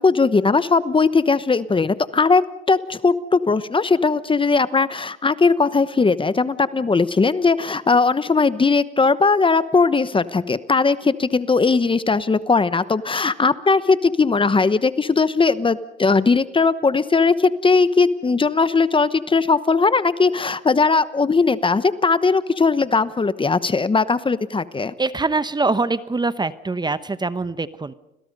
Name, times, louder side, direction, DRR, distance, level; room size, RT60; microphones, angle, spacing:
voice 1, 0.0-2.4 2.7-24.9, left 4 dB, 25° left, 15 dB, 1.1 m, -19 dB
voice 2, 25.0-27.9, right 3 dB, 20° right, 14 dB, 1.0 m, -23 dB
29.5 x 21.0 x 5.4 m, 0.86 s
cardioid pair, 90°, 20 cm